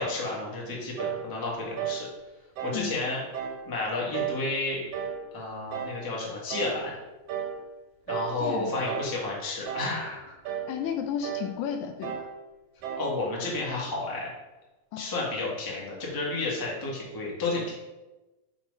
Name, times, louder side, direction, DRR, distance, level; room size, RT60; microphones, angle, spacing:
voice 1, 0.0-2.0 2.6-3.2 3.6-4.8 5.3-6.9 8.1-10.3 13.0-14.3 15.0-17.7, left 2 dB, 20° left, -4 dB, 0.5 m, -31 dB
sound 1, 1.0-1.3 1.8-2.1 2.6-2.9 3.3-3.6 4.1-4.5 4.9-5.2 5.7-6.0 6.5-6.8 7.3-7.6 8.1-8.4 8.9-9.2 9.7-10.0 10.5-10.7 11.2-11.5 12.0-12.3 12.8-13.1, right 8 dB, 70° right, 2.3 m, -33 dB
voice 2, 8.4-8.7 10.7-12.2 14.9-15.1, left 8 dB, 80° left, 6 dB, 1.7 m, -33 dB
5.9 x 5.3 x 5.4 m, 1.1 s
omnidirectional pair, 3.9 m